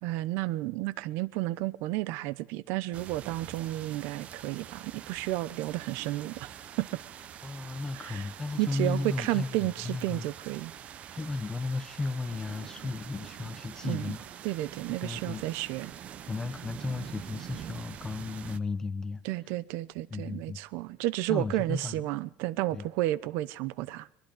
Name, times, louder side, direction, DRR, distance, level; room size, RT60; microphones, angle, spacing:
voice 1, 0.0-7.0 7.9-8.3 8.6-10.7 13.8-14.2 14.4-15.9 19.2-24.1, right 17 dB, 70° right, 0.9 m, -32 dB
sound 1, 2.9-18.6, right 9 dB, 35° right, 0.8 m, -45 dB
voice 2, 7.4-9.5 9.8-10.3 11.1-14.3 15.0-15.4 16.3-19.2 20.1-20.6 21.3-22.0 22.7-22.8, left 3 dB, 15° left, 0.9 m, -34 dB
23.0 x 22.5 x 5.2 m
cardioid pair, 175°, 4 cm